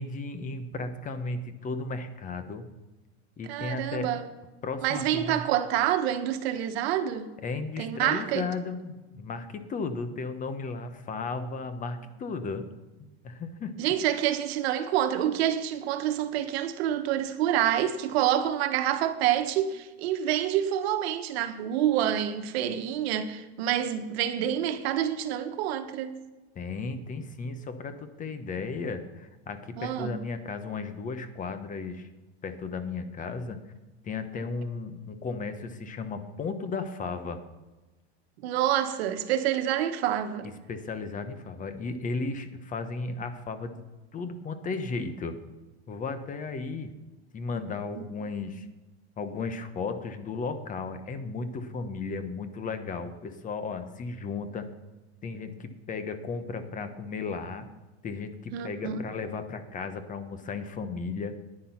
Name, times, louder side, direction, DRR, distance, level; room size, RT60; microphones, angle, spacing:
voice 1, 0.0-2.7 3.4-4.1 4.6-5.4 7.4-12.7 13.0-13.7 26.5-32.1 32.4-33.6 34.0-37.4 40.4-43.8 44.1-45.4 45.9-46.9 47.3-48.7 49.2-54.7 55.2-57.6 58.0-61.3, left 4 dB, 25° left, 1.0 m, -35 dB
voice 2, 3.5-4.3 4.8-7.3 7.8-8.5 13.8-26.1 29.8-30.2 38.4-40.5 58.5-59.0, right 11 dB, 70° right, 1.3 m, -27 dB
10.0 x 9.9 x 5.8 m
supercardioid pair, 135°, 32 cm